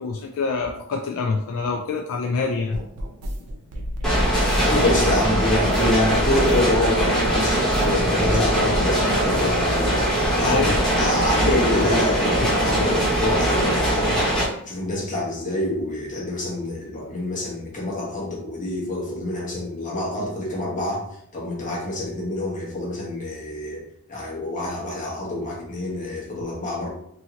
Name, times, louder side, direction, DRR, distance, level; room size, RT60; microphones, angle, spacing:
voice 1, 0.0-2.8 10.4-10.8, left 4 dB, 65° left, 2 dB, 0.3 m, -26 dB
sound 1, 2.7-8.4 8.7-10.4 10.7-11.7, equal, 90° right, 0.5 m, -33 dB
sound 2, 4.0-14.4, equal, 5° left, 0.8 m, -21 dB
voice 2, 4.6-21.0 21.3-23.8 24.1-26.9, left 1 dB, 35° left, -5 dB, 1.0 m, -26 dB
2.8 x 2.7 x 2.8 m, 0.73 s
head